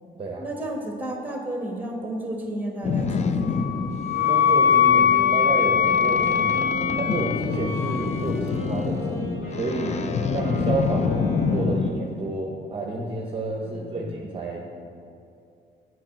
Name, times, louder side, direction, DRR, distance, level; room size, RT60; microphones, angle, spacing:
voice 1, 0.4-3.7 13.7-14.1, right 1 dB, 10° right, 1 dB, 1.2 m, -33 dB
Boat Water vehicle, 2.8-11.9, left 5 dB, 35° left, 0.4 m, -28 dB
Wind instrument woodwind instrument, 3.5-8.3, left 8 dB, 85° left, 0.5 m, -21 dB
Wind instrument woodwind instrument 2, 4.1-11.9, left 1 dB, 70° left, 1.6 m, -36 dB
voice 2, 4.2-9.9 10.3-14.6, right 2 dB, 25° right, -1 dB, 0.8 m, -30 dB
7.6 x 3.9 x 5.7 m, 2.5 s
cardioid pair, 90°, 20 cm